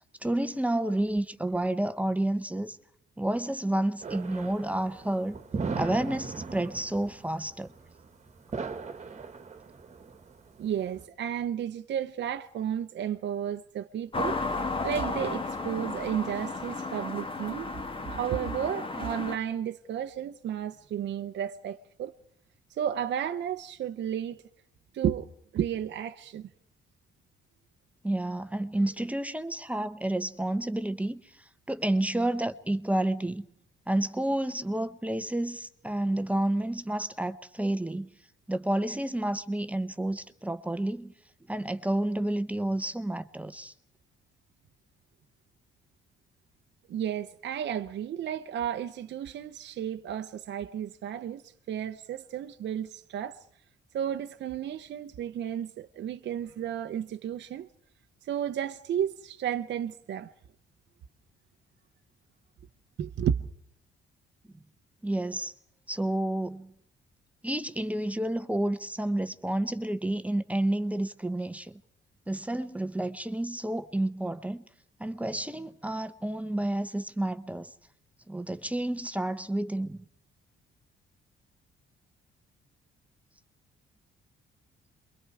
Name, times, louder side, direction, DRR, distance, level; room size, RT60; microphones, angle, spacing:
voice 1, 0.2-2.8 3.2-5.4 5.8-7.7 28.0-31.2 31.7-33.4 33.9-38.1 38.5-41.1 41.5-43.7 65.0-65.5 65.9-66.7 67.4-71.8 72.3-74.6 75.0-77.7 78.3-80.0, right 1 dB, 5° right, 1.0 m, -30 dB
sound 1, 4.0-11.0, right 4 dB, 35° right, 1.6 m, -38 dB
voice 2, 10.6-17.7 18.1-22.2 22.7-24.4 24.9-26.5 46.9-53.4 53.9-57.7 58.2-60.3 63.0-63.4, right 9 dB, 65° right, 0.8 m, -33 dB
sound 2, 14.1-19.4, left 3 dB, 25° left, 1.7 m, -33 dB
28.0 x 23.0 x 4.8 m
cardioid pair, 90°, 20 cm